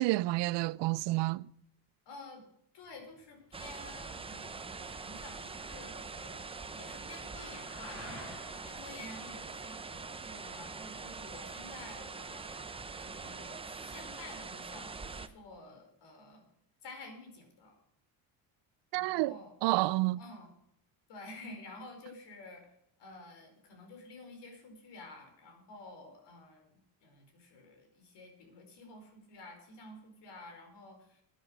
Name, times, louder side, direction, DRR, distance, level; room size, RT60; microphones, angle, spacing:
voice 1, 0.0-1.4 18.9-20.2, right 19 dB, 70° right, 0.5 m, -29 dB
voice 2, 2.1-2.4 2.7-8.1 8.6-12.6 13.0-16.4 16.8-17.8 18.9-19.5 20.2-20.5 21.1-22.7 23.0-31.2, left 2 dB, 65° left, 4.8 m, -51 dB
sound 1, 2.8-12.8, left 1 dB, 30° left, 5.4 m, -55 dB
sound 2, 3.5-15.3, right 4 dB, 10° right, 0.6 m, -44 dB
12.0 x 10.5 x 6.4 m
cardioid pair, 150°, 45 cm